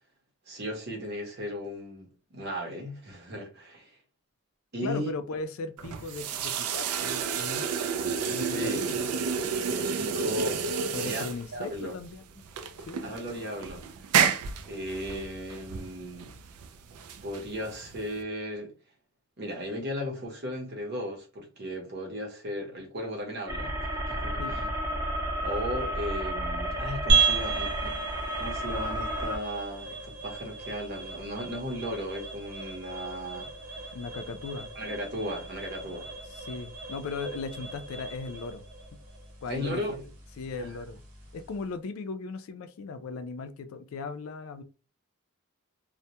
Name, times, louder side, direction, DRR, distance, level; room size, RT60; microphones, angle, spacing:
voice 1, 0.5-4.0 4.7-5.1 8.3-8.8 9.7-10.6 11.0-11.3 11.5-11.9 13.0-13.9 14.7-16.4 17.2-18.7 19.4-23.8 24.1-24.6 25.4-28.1 28.4-33.5 34.7-36.1 39.5-40.0 40.6-40.7, equal, 50° right, 0.8 m, -36 dB
voice 2, 4.8-7.7 8.3-9.1 10.9-12.2 12.9-13.1 24.4-24.7 33.9-34.7 36.3-38.6 39.4-39.8 40.4-41.0 41.3-44.6, left 4 dB, 70° left, 0.3 m, -37 dB
sound 1, 5.8-18.2, right 6 dB, 85° right, 0.3 m, -31 dB
sound 2, 23.5-29.4, equal, 15° right, 0.4 m, -32 dB
sound 3, 27.1-41.7, right 4 dB, 70° right, 1.0 m, -34 dB
2.1 x 2.1 x 2.8 m
head